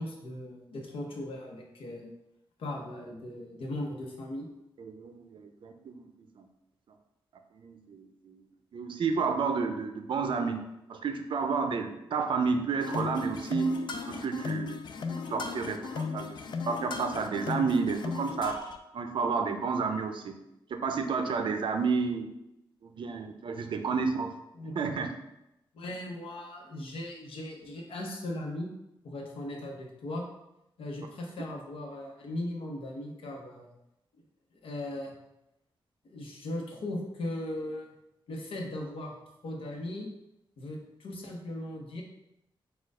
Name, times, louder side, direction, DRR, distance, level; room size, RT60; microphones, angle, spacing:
voice 1, 0.0-2.1 2.6-4.5 24.5-24.8 25.7-28.7 29.0-30.2 30.8-33.7 34.6-35.1 36.0-37.9 38.3-39.2 39.4-40.1 40.6-42.0, left 1 dB, 90° left, 0 dB, 0.9 m, -38 dB
voice 2, 4.8-6.0 6.4-6.5 7.5-8.4 8.7-10.6 10.9-14.8 15.1-16.4 16.7-18.6 18.9-20.3 20.7-22.3 22.8-24.3 24.8-25.1, right 5 dB, 65° right, 6 dB, 0.5 m, -31 dB
sound 1, 12.8-18.8, left 5 dB, 55° left, 0.4 m, -36 dB
4.3 x 2.4 x 4.8 m, 0.87 s
wide cardioid pair, 145°, 9 cm